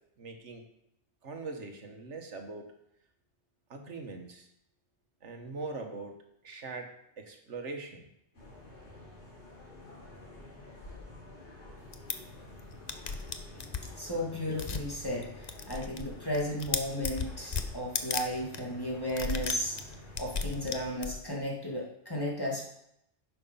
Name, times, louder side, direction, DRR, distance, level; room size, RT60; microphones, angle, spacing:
voice 1, 0.2-0.6 1.2-2.7 3.7-4.5 5.2-8.1, right 3 dB, 85° right, 4 dB, 1.6 m, -42 dB
sound 1, 8.3-20.9, left 1 dB, 80° left, 3.8 m, -49 dB
sound 2, 11.9-12.1 12.6-12.7 12.9-13.9 14.6-14.9 15.2-16.1 16.3-18.2 18.5-18.6 19.1-21.3, left 5 dB, 40° left, 0.8 m, -34 dB
voice 2, 13.5-19.8 20.2-22.6, equal, 20° left, -3 dB, 2.4 m, -34 dB
11.0 x 7.0 x 5.5 m, 0.78 s
omnidirectional pair, 1.2 m